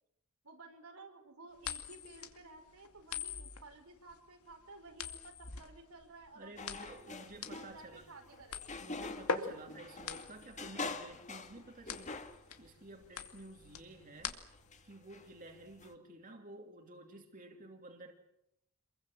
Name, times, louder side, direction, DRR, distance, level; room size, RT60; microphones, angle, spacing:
voice 1, 0.4-7.2 7.5-8.9, right 3 dB, 85° right, 3 dB, 5.6 m, -55 dB
sound 1, 1.6-14.8, left 5 dB, 80° left, 2.4 m, -43 dB
voice 2, 6.3-8.0 8.8-14.4 14.8-18.1, right 2 dB, 40° right, 3 dB, 2.8 m, -52 dB
sound 2, 6.6-15.9, left 3 dB, 35° left, 1.9 m, -47 dB
27.5 x 22.5 x 7.6 m, 0.80 s
head